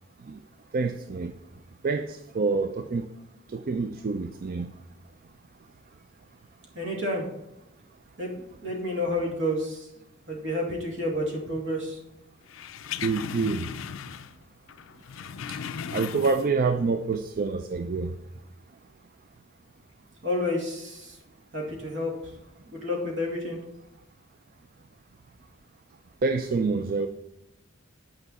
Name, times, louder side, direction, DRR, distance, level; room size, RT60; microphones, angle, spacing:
voice 1, 0.7-1.3 1.8-3.1 3.5-4.7 13.0-13.7 15.5-15.6 15.9-18.1 26.2-27.1, right 4 dB, 45° right, 0.4 m, -27 dB
voice 2, 6.7-7.3 8.2-9.9 10.3-12.0 20.2-21.2 21.5-22.1 22.7-23.6, left 1 dB, 65° right, 2.4 m, -30 dB
sound 1, 12.5-14.4 14.7-16.7 17.0-17.2, left 7 dB, 75° left, 0.4 m, -37 dB
9.1 x 5.3 x 4.1 m
head